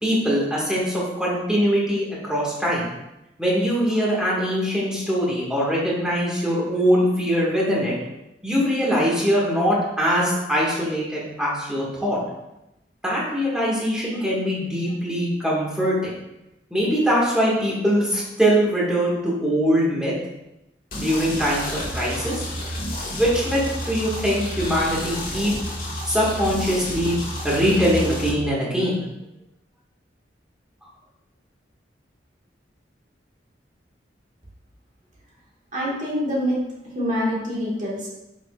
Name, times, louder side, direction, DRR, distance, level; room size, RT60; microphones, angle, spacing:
voice 1, 0.0-2.8 3.4-7.9 8.4-12.2 13.0-16.1 16.7-20.1 21.0-22.4 23.2-25.5 26.1-27.1 27.4-29.0, equal, 5° right, -6 dB, 1.9 m, -22 dB
sound 1, 20.9-28.3, left 1 dB, 50° left, 1.7 m, -30 dB
voice 2, 35.7-38.1, equal, 45° right, -5 dB, 1.8 m, -26 dB
7.4 x 6.3 x 2.5 m, 0.92 s
head